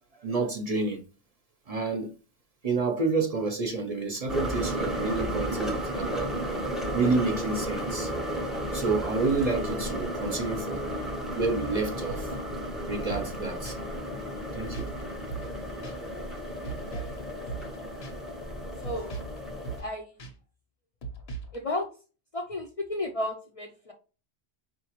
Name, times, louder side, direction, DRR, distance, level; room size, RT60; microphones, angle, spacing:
voice 1, 0.2-1.0 1.7-2.1 2.6-6.4 6.9-8.1 8.7-10.9 11.3-12.3 12.9-13.8 14.5-14.9, right 3 dB, 45° right, 0.6 m, -29 dB
sound 1, 4.3-19.8, equal, ahead, 0.6 m, -33 dB
sound 2, 13.1-13.4 13.7-13.8 14.7-15.0 15.3-15.6 15.8-16.0 16.6-17.2 17.5-17.8 18.0-18.1 18.8-19.4 19.6-19.9 20.2-20.3 21.0-21.6, right 4 dB, 75° left, 1.1 m, -38 dB
voice 2, 16.6-17.4 18.8-19.2 19.8-20.2 21.5-21.9 22.3-23.9, left 1 dB, 45° left, 0.5 m, -34 dB
4.8 x 2.5 x 2.9 m
omnidirectional pair, 1.0 m